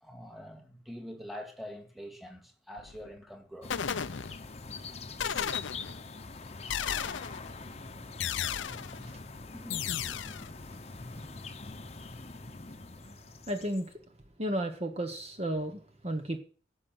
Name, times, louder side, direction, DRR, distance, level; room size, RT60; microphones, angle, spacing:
voice 1, 0.0-3.9 9.5-9.8, equal, ahead, 2.1 m, -45 dB
sound 1, 2.8-3.2 3.7-4.7 5.2-6.1 6.7-7.5 8.2-9.1 9.7-10.5, left 8 dB, 85° left, 0.6 m, -34 dB
sound 2, 3.6-13.9, left 4 dB, 35° left, 0.9 m, -44 dB
voice 2, 13.5-13.9 14.4-16.4, right 1 dB, 35° right, 1.2 m, -33 dB
16.0 x 6.5 x 7.9 m
head